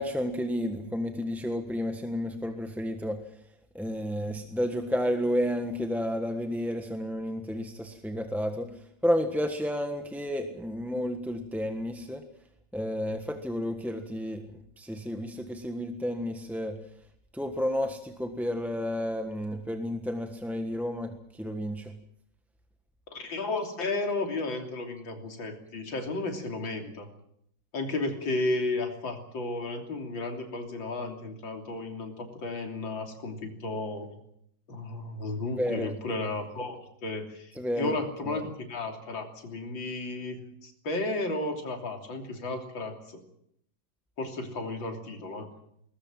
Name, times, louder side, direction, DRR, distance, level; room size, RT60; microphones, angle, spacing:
voice 1, 0.0-3.2 3.7-8.7 9.0-12.2 12.7-16.8 17.3-21.9 35.6-35.9 37.5-37.9 38.3-38.4, equal, ahead, 5 dB, 1.1 m, -31 dB
voice 2, 23.1-27.1 27.7-34.1 34.7-43.2 44.2-45.5, left 2 dB, 70° left, 3 dB, 3.9 m, -33 dB
21.0 x 20.5 x 7.6 m, 0.72 s
omnidirectional pair, 2.2 m